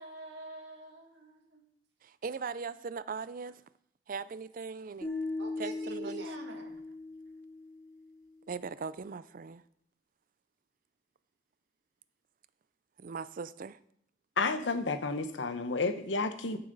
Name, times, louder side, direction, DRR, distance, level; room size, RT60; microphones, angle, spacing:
voice 1, 0.0-1.6 5.4-6.8, right 2 dB, 75° right, 2.1 m, -47 dB
voice 2, 2.0-3.6 4.1-5.1 5.6-6.3 8.5-9.6 13.0-13.8, right 5 dB, 50° right, 0.4 m, -39 dB
sound 1, 5.0-8.2, left 2 dB, 15° left, 1.7 m, -39 dB
voice 3, 14.4-16.6, left 3 dB, 85° left, 0.9 m, -31 dB
14.0 x 7.0 x 4.0 m
head